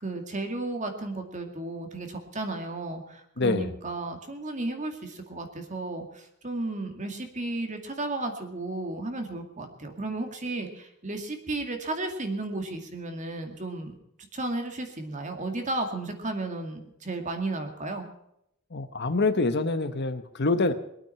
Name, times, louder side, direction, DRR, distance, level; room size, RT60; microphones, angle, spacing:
voice 1, 0.0-13.9 14.3-18.1, right 2 dB, 35° right, 5 dB, 2.2 m, -33 dB
voice 2, 3.4-3.7 18.7-20.7, left 3 dB, 55° left, 10 dB, 1.0 m, -26 dB
22.0 x 9.0 x 5.9 m, 0.78 s
head